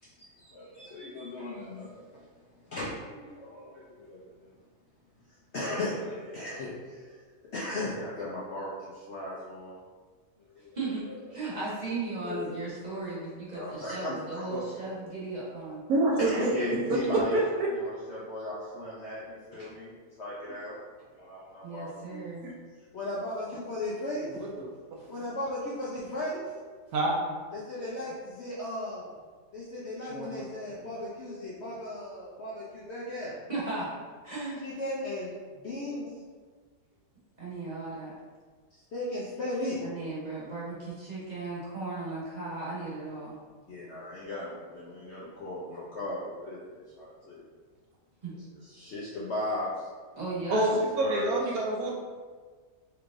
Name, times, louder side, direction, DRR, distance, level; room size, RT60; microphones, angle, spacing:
voice 1, 0.0-4.5 5.5-7.2 7.5-9.8 10.5-10.8 11.1-11.4 12.2-12.7 13.5-15.0 16.2-17.4 17.7-19.9 20.2-20.8 21.1-22.3 22.9-24.3 25.1-26.4 27.5-29.2 29.5-33.4 34.6-36.1 38.7-39.8 43.7-47.4 48.3-49.9 50.6-51.4, left 1 dB, 60° left, -7 dB, 0.7 m, -37 dB
voice 2, 10.7-15.8 21.6-22.5 25.0-25.2 28.1-28.2 33.5-33.9 34.2-34.6 37.4-38.1 39.8-43.4 48.2-48.3 50.1-50.7, right 3 dB, 30° right, -8 dB, 1.1 m, -36 dB
voice 3, 15.9-16.5 16.9-17.7 22.4-22.5 24.4-24.7 26.9-27.2 30.1-30.4 50.5-51.9, right 2 dB, 70° right, -2 dB, 1.0 m, -27 dB
4.5 x 3.2 x 2.5 m, 1.5 s
omnidirectional pair, 1.7 m